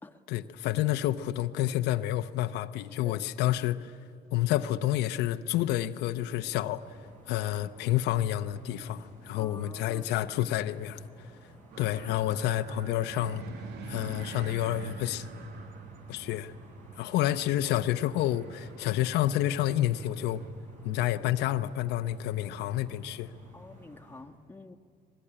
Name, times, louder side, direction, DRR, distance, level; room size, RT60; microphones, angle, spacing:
voice 1, 0.3-3.9 4.3-6.8 7.3-11.0 11.8-13.4 13.9-15.3 16.1-16.5 17.0-20.4 20.8-23.3, left 13 dB, 85° left, 0.8 m, -29 dB
voice 2, 3.0-3.5 9.3-10.1 23.5-24.8, left 2 dB, 10° left, 1.5 m, -48 dB
sound 1, 6.7-24.2, right 3 dB, 45° right, 6.8 m, -52 dB
sound 2, 11.7-20.5, right 5 dB, 75° right, 1.8 m, -46 dB
24.0 x 21.0 x 10.0 m
cardioid pair, 110°, 17 cm